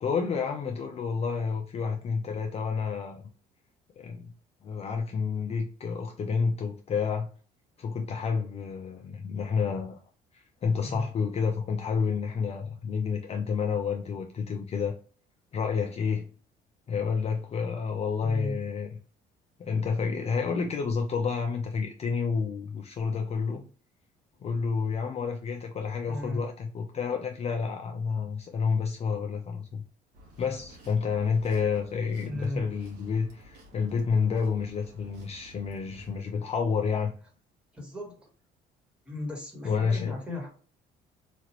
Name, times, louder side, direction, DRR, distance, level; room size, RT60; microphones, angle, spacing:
voice 1, 0.0-3.2 4.0-4.2 4.6-7.3 7.8-10.0 10.3-15.0 15.5-16.3 16.9-18.9 19.6-23.6 24.4-29.8 30.4-37.1 39.6-40.2, left 5 dB, 40° left, 0.4 m, -29 dB
voice 2, 10.7-11.1 18.2-18.6 26.0-26.5 32.2-32.7 37.7-38.2 39.0-40.5, left 1 dB, 5° right, 1.4 m, -36 dB
sound 1, 30.1-36.2, right 1 dB, 75° right, 1.1 m, -53 dB
3.0 x 2.4 x 2.9 m
cardioid pair, 110°, 17 cm